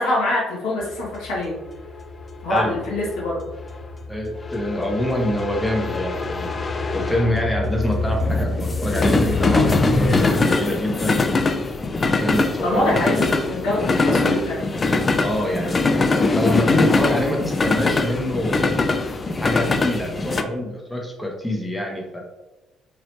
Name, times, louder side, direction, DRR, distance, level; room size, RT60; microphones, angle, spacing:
voice 1, 0.0-1.6 2.4-3.4 12.6-14.7, left 1 dB, 65° left, -5 dB, 1.0 m, -24 dB
sound 1, 0.9-20.4, left 3 dB, 30° left, 0.3 m, -22 dB
voice 2, 4.1-6.5 6.9-11.2 12.0-13.0 15.2-15.8 16.1-18.7 19.3-22.2, left 1 dB, 10° left, 0 dB, 0.9 m, -25 dB
3.0 x 3.0 x 3.0 m, 1.1 s
figure-of-eight pair, 50°, 0 cm